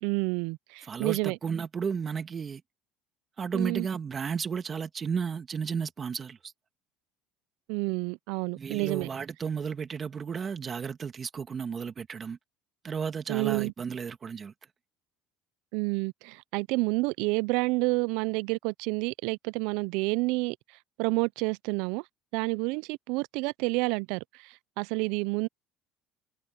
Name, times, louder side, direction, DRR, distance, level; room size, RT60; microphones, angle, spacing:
voice 1, 0.0-1.4 3.5-3.9 7.7-9.1 13.3-13.7 15.7-20.6 21.0-22.0 22.3-25.5, right 26 dB, 75° right, 0.5 m, -29 dB
voice 2, 0.9-2.6 3.4-6.5 8.6-12.4 12.8-14.5, right 6 dB, 35° right, 1.8 m, -33 dB
supercardioid pair, 90°, 0 cm